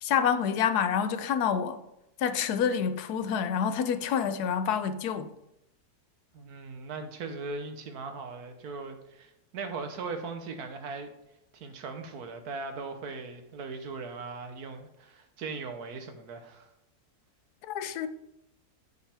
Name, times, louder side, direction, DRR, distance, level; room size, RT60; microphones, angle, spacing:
voice 1, 0.0-1.8 2.2-5.3 17.7-18.1, left 7 dB, 80° left, 1.2 m, -27 dB
voice 2, 6.3-11.1 11.5-16.7, right 4 dB, 75° right, 1.4 m, -39 dB
8.2 x 8.0 x 3.4 m
omnidirectional pair, 1.6 m